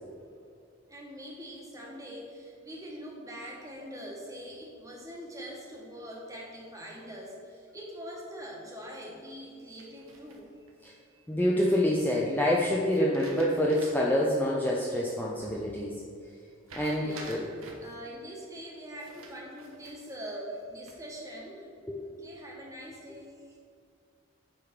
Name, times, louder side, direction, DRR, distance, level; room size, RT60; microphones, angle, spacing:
voice 1, 0.9-11.2 15.4-15.6 17.0-21.7 22.0-23.6, equal, 15° right, -2 dB, 1.3 m, -43 dB
sound 1, 9.8-10.7 12.9-14.2 14.6-14.7 16.7-18.0 19.0-20.2 20.6-21.2, right 3 dB, 80° right, 1.2 m, -49 dB
voice 2, 11.3-16.0 16.7-17.4 21.9-22.0, left 1 dB, 10° left, -3 dB, 0.5 m, -27 dB
8.5 x 3.5 x 5.8 m, 2.3 s
head